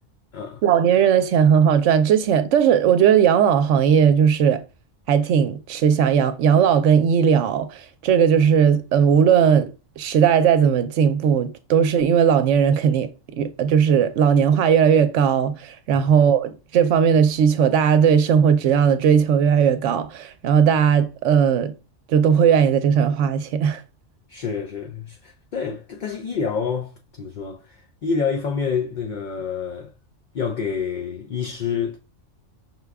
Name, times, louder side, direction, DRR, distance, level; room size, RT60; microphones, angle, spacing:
voice 1, 0.6-4.6 5.1-9.7 10.0-13.1 13.4-21.7 22.1-23.8, right 7 dB, 80° right, 0.9 m, -17 dB
voice 2, 24.3-29.9 30.3-32.0, left 6 dB, 60° left, 0.5 m, -28 dB
5.7 x 2.3 x 3.4 m
omnidirectional pair, 1.3 m